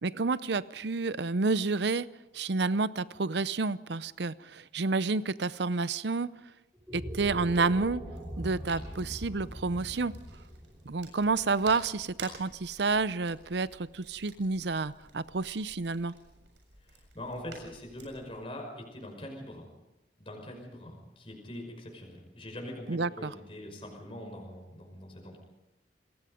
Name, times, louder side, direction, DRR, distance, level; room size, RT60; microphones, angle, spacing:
voice 1, 0.0-2.1 2.3-6.3 6.9-8.0 8.4-10.1 10.9-16.1 22.9-23.3, right 3 dB, 70° right, 17 dB, 0.7 m, -29 dB
sound 1, 6.7-13.1, equal, 5° right, 4.9 m, -42 dB
sound 2, 8.1-18.4, right 4 dB, 90° right, 7.3 m, -52 dB
voice 2, 16.8-19.7 20.2-25.4, left 1 dB, 30° left, 1 dB, 5.7 m, -43 dB
27.5 x 20.0 x 5.2 m, 0.97 s
head